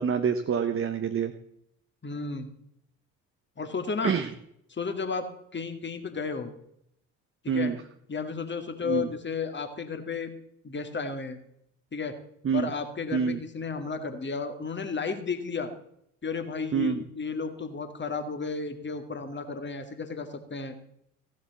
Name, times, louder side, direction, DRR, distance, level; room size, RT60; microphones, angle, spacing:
voice 1, 0.0-1.3 4.0-4.3 7.5-7.8 8.8-9.1 12.4-12.7 13.1-13.4 16.7-17.0, right 6 dB, 30° right, 7 dB, 1.0 m, -26 dB
voice 2, 2.0-2.5 3.6-4.1 4.7-5.3 5.5-6.5 7.4-7.7 8.1-10.3 10.6-11.4 11.9-12.1 12.5-15.7 16.2-20.7, left 5 dB, 25° left, 8 dB, 2.1 m, -33 dB
15.0 x 7.5 x 7.2 m, 0.73 s
figure-of-eight pair, 50°, 44 cm